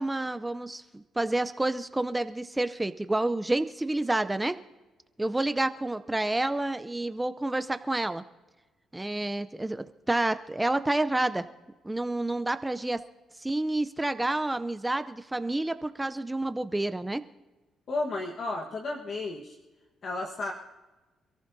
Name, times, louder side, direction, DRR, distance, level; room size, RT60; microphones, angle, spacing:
voice 1, 0.0-4.6 5.2-8.2 8.9-11.4 11.8-13.0 13.4-17.2, right 2 dB, 10° right, 11 dB, 0.5 m, -29 dB
voice 2, 17.9-19.6 20.0-20.5, left 2 dB, 50° left, 2 dB, 1.3 m, -33 dB
27.0 x 14.0 x 2.7 m, 1.2 s
cardioid pair, 90°, 0 cm